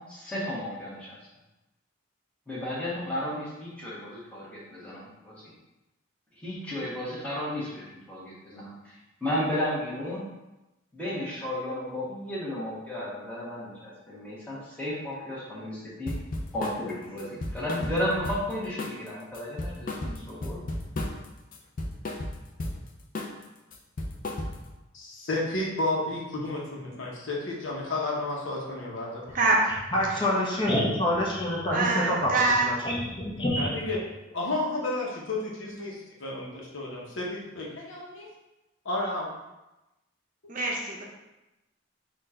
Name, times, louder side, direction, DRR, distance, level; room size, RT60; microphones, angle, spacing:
voice 1, 0.1-1.3 2.5-5.4 6.4-8.9 9.2-10.3 10.9-16.1 16.5-20.6, left 1 dB, 5° left, -8 dB, 1.3 m, -33 dB
sound 1, 16.1-16.8 17.2-18.5 18.8-19.1 19.3-21.3 21.5-22.8 23.1-23.4 23.7-24.7, left 1 dB, 45° left, 0.5 m, -34 dB
voice 2, 24.9-29.4 33.6-34.0 34.3-38.3 38.8-39.3, left 2 dB, 70° left, -3 dB, 1.0 m, -32 dB
voice 3, 29.3-29.7 30.1-30.2 31.7-32.7 40.5-41.0, right 3 dB, 40° right, -2 dB, 0.7 m, -25 dB
voice 4, 29.9-33.8, left 1 dB, 25° left, -4 dB, 0.9 m, -27 dB
4.3 x 2.5 x 4.3 m, 0.99 s
head